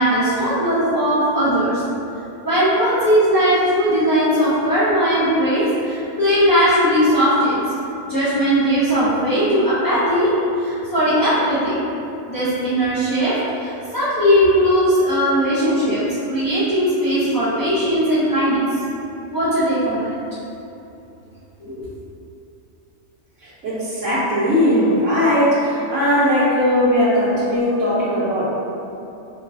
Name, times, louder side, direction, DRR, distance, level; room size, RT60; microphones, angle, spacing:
voice 1, 0.0-1.8 2.4-7.6 8.1-10.3 10.6-11.8 12.3-18.7 19.3-20.0 21.6-21.9, equal, 25° left, -13 dB, 0.5 m, -18 dB
voice 2, 23.4-28.5, equal, 75° right, -11 dB, 1.1 m, -18 dB
5.2 x 2.3 x 2.6 m, 2.9 s
omnidirectional pair, 1.3 m